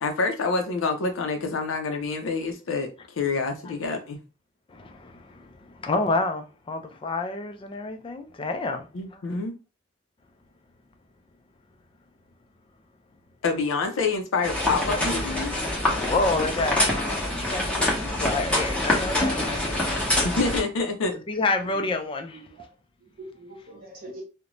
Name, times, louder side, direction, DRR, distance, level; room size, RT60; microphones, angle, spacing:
voice 1, 0.0-2.9 3.2-4.2 8.9-9.5 13.4-15.5 20.2-21.2, left 4 dB, 85° left, 0.5 m, -27 dB
voice 2, 4.7-9.2 15.9-19.9 21.3-22.4, left 3 dB, 25° left, 0.3 m, -29 dB
sound 1, 14.4-20.6, left 1 dB, 5° left, 0.7 m, -25 dB
voice 3, 22.3-22.7 23.0-24.2, right 2 dB, 50° right, 0.6 m, -43 dB
2.5 x 2.1 x 2.9 m
head